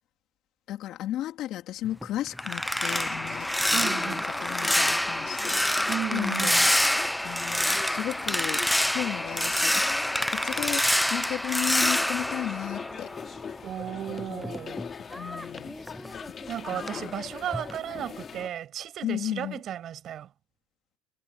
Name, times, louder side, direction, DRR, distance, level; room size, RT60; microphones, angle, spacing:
voice 1, 0.7-6.5 7.2-9.8 10.3-10.8 11.1-13.1 14.3-14.5 15.0-15.7 16.7-17.1 19.0-19.6, left 13 dB, 55° left, 3.6 m, -34 dB
sound 1, 1.8-13.5 13.8-16.5 16.8-17.1 17.5-17.8, left 1 dB, 5° left, 0.6 m, -27 dB
sound 2, 2.8-18.5, left 7 dB, 30° left, 2.9 m, -42 dB
voice 2, 3.7-4.3 5.9-6.7 13.6-14.8 16.5-20.3, right 10 dB, 45° right, 7.5 m, -34 dB
cardioid pair, 125°, 0 cm